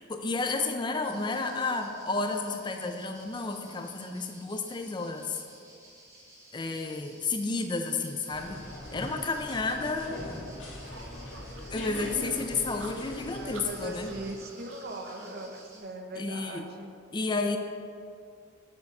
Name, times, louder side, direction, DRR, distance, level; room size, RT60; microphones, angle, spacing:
voice 1, 0.0-5.4 6.5-8.6 8.9-10.2 11.7-14.1 16.2-16.6 17.1-17.6, left 3 dB, 25° left, 5 dB, 0.4 m, -31 dB
sound 1, 1.0-15.8, right 1 dB, 15° right, 1.4 m, -54 dB
sound 2, 8.3-14.3, left 1 dB, 70° left, 1.8 m, -41 dB
sound 3, 10.8-15.4, right 3 dB, 80° right, 0.8 m, -49 dB
voice 2, 13.4-16.9, right 1 dB, 50° right, 4 dB, 0.8 m, -40 dB
7.2 x 6.5 x 5.4 m, 2.4 s
head